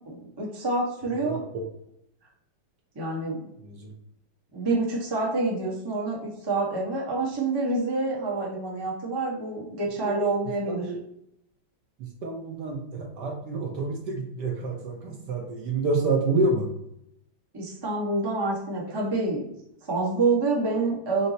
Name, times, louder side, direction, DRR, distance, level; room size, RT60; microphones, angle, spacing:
voice 1, 0.0-1.4 2.9-3.5 4.5-10.8 17.5-19.5 19.9-21.3, right 3 dB, 35° right, -4 dB, 0.4 m, -27 dB
voice 2, 1.1-1.4 3.6-3.9 10.0-10.3 10.7-11.0 12.0-16.7, right 3 dB, 70° right, 1 dB, 1.1 m, -28 dB
5.3 x 2.0 x 3.9 m, 0.77 s
omnidirectional pair, 2.2 m